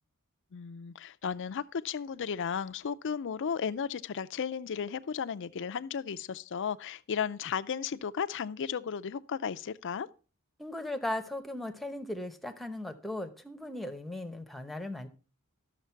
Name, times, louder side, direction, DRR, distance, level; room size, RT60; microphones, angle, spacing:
voice 1, 0.5-10.1, left 7 dB, 55° left, 0.5 m, -34 dB
voice 2, 10.6-15.1, left 1 dB, ahead, 0.9 m, -37 dB
12.5 x 6.6 x 4.5 m
head